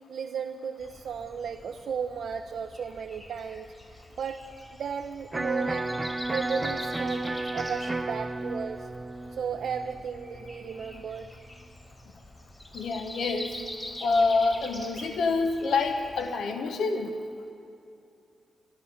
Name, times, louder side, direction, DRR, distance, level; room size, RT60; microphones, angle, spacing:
voice 1, 0.1-3.7 4.2-4.4 4.8-5.9 6.3-8.9 9.4-11.3, right 6 dB, 75° right, 4 dB, 0.5 m, -34 dB
Breathing, 0.8-16.4, left 1 dB, 20° left, 2.2 m, -45 dB
Electric guitar, 5.3-11.4, right 2 dB, 20° right, 0.4 m, -33 dB
voice 2, 12.7-13.5 14.0-17.1, left 3 dB, 80° left, 6 dB, 1.0 m, -26 dB
12.0 x 12.0 x 6.2 m, 2.6 s
cardioid pair, 60°, 0 cm